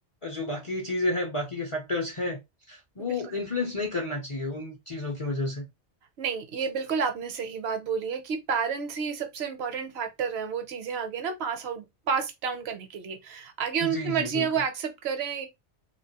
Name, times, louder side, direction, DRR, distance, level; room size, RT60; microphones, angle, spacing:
voice 1, 0.2-2.4 2.7-5.7 13.8-14.5, left 2 dB, 40° left, 0.5 m, -31 dB
voice 2, 3.0-3.3 6.2-15.5, right 6 dB, 70° right, 0.8 m, -30 dB
2.4 x 2.3 x 2.7 m
omnidirectional pair, 1.2 m